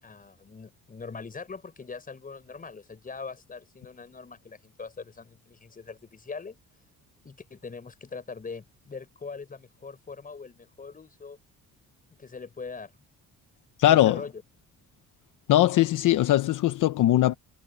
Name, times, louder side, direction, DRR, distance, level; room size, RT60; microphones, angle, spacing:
voice 1, 0.0-6.6 7.2-11.4 12.2-12.9 13.8-14.4, left 4 dB, 25° left, 6.3 m, -41 dB
voice 2, 13.8-14.2 15.5-17.3, left 13 dB, 70° left, 0.9 m, -20 dB
cardioid pair, 130°, 32 cm